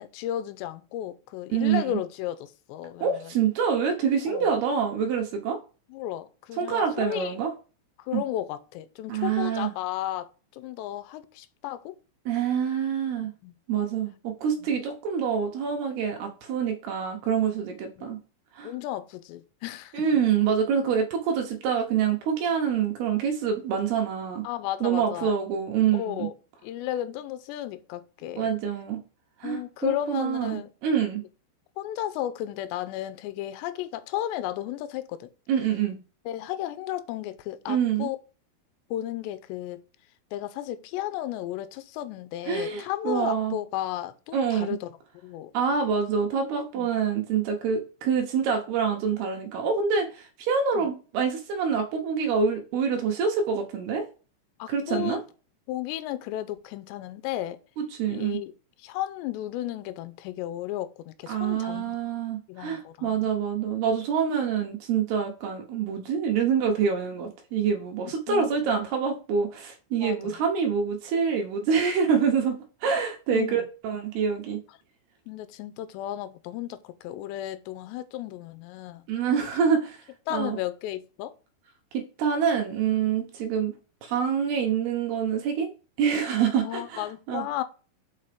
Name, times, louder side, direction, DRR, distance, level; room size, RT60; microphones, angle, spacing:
voice 1, 0.0-3.3 4.3-4.5 5.9-7.4 8.0-11.9 13.2-13.6 14.6-14.7 18.0-18.2 18.6-20.0 24.4-25.3 25.9-26.3 26.6-28.5 29.4-30.7 31.8-35.3 36.3-38.2 38.9-39.8 40.3-44.9 45.2-45.5 46.8-46.9 50.8-50.9 54.6-55.2 55.7-57.6 58.1-58.5 58.8-62.0 62.5-63.3 68.0-68.5 70.0-70.4 73.3-73.7 75.3-79.0 80.3-81.3 86.6-87.6, left 13 dB, 90° left, 2.9 m, -34 dB
voice 2, 1.5-2.0 3.0-5.6 6.6-7.5 8.1-8.2 9.1-9.7 12.3-13.3 13.7-18.2 18.6-18.7 19.9-24.4 24.8-26.3 28.4-29.0 29.4-31.2 35.5-36.0 37.7-38.1 42.5-43.6 44.3-44.8 45.5-54.1 54.7-55.2 57.8-58.4 61.3-74.6 79.1-80.0 80.3-80.6 81.9-83.8 84.0-85.7 86.0-87.4, right 7 dB, 75° right, 2.8 m, -26 dB
5.9 x 5.6 x 5.0 m
omnidirectional pair, 5.0 m